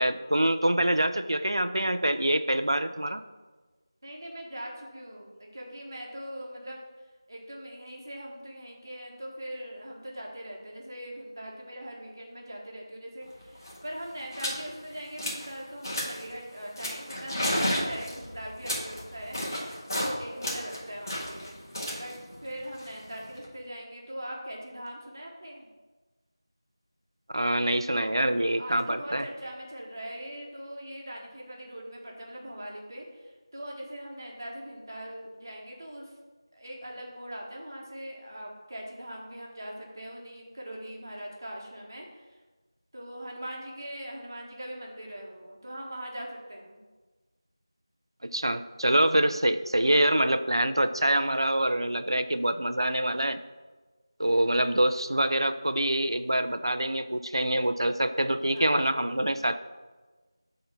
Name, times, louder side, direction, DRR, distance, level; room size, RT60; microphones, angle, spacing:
voice 1, 0.0-3.2 27.3-29.3 48.3-53.4 54.2-59.6, right 1 dB, 65° right, 10 dB, 0.5 m, -25 dB
voice 2, 4.0-6.8 7.3-19.4 19.9-21.6 22.0-22.1 22.4-25.7 28.6-36.1 36.5-42.4 42.9-46.8 51.9-52.2 58.5-58.9, equal, 40° right, -1 dB, 1.3 m, -41 dB
sound 1, 13.3-13.4 13.6-13.8 14.3-14.6 15.0-15.5 15.8-16.3 16.8-20.1 20.4-23.5, equal, 45° left, 1.7 m, -32 dB
6.6 x 3.8 x 5.6 m, 1.3 s
figure-of-eight pair, 170°, 3 cm